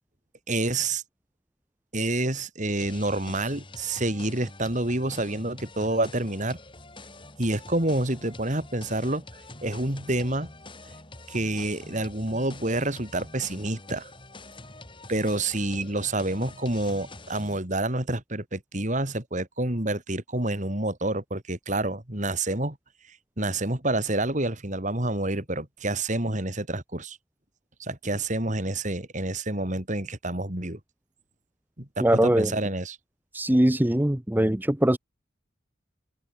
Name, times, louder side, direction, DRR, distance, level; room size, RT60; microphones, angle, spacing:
voice 1, 0.5-1.0 1.9-6.6 7.4-9.2 9.6-10.5 11.3-14.1 15.1-22.8 23.1-27.2 27.8-30.8 31.8-33.0, right 2 dB, 40° right, 3.5 m, -28 dB
sound 1, 2.8-17.6, left 2 dB, 25° left, 6.3 m, -46 dB
voice 2, 32.0-32.5 33.3-35.0, right 1 dB, 10° right, 0.7 m, -21 dB
head